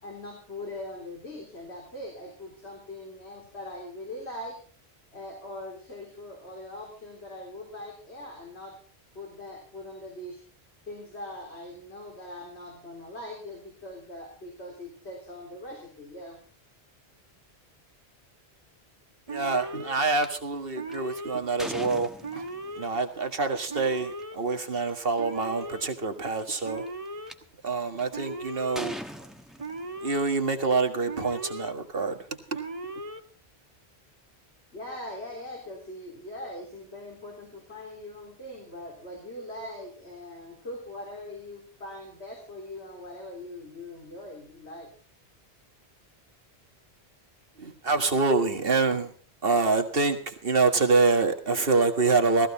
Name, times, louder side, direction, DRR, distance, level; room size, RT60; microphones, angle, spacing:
voice 1, 0.0-4.6 5.1-8.8 9.1-10.4 10.9-16.4 34.7-44.9, left 1 dB, 90° left, -1 dB, 4.0 m, -41 dB
Alarm, 19.3-19.9 20.7-21.4 22.2-22.9 23.7-24.4 25.2-25.8 26.6-27.3 28.1-28.8 29.6-30.3 31.1-31.7 32.5-33.2, right 2 dB, 35° right, 1.3 m, -37 dB
voice 2, 19.3-22.4 22.8-26.8 27.6-29.0 30.0-32.2 32.5-32.6 47.6-49.1 49.4-52.5, right 3 dB, 60° right, 6 dB, 1.9 m, -26 dB
sound 1, 20.2-20.3 20.9-22.8 24.0-24.2 24.9-25.0 25.2-25.6 26.4-27.3 28.0-28.3 28.8-30.2, equal, ahead, 1.2 m, -40 dB
15.5 x 15.0 x 4.2 m, 0.40 s
omnidirectional pair, 1.1 m